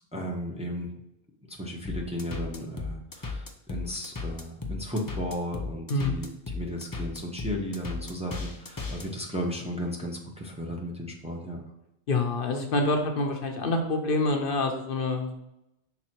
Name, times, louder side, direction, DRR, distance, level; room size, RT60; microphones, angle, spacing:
voice 1, 0.1-0.9 1.5-11.6, equal, 5° right, -1 dB, 0.9 m, -35 dB
sound 1, 1.8-9.1, left 3 dB, 25° left, 0.6 m, -35 dB
voice 2, 5.9-6.3 12.1-15.3, left 2 dB, 60° left, 4 dB, 0.9 m, -27 dB
6.0 x 3.7 x 4.4 m, 0.85 s
omnidirectional pair, 1.0 m